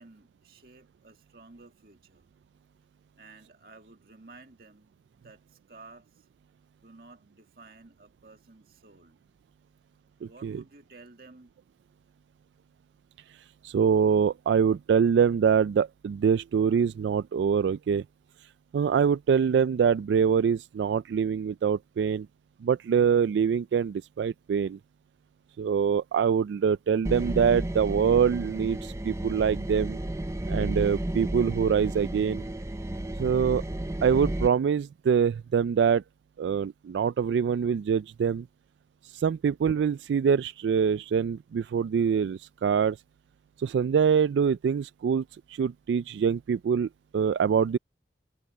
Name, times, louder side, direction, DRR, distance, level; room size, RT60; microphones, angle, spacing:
voice 1, 0.0-2.3 3.2-4.9 5.2-6.3 6.8-9.2 10.2-11.5, right 3 dB, 55° right, 2.0 m, -53 dB
voice 2, 10.2-10.6 13.3-18.0 18.7-22.3 22.6-24.8 25.6-30.0 30.5-32.5 33.2-33.6 34.0-36.0 36.4-38.5 39.0-43.0 43.6-47.8, right 7 dB, 85° right, 0.3 m, -24 dB
sound 1, 27.0-34.5, right 1 dB, 15° right, 0.6 m, -32 dB
head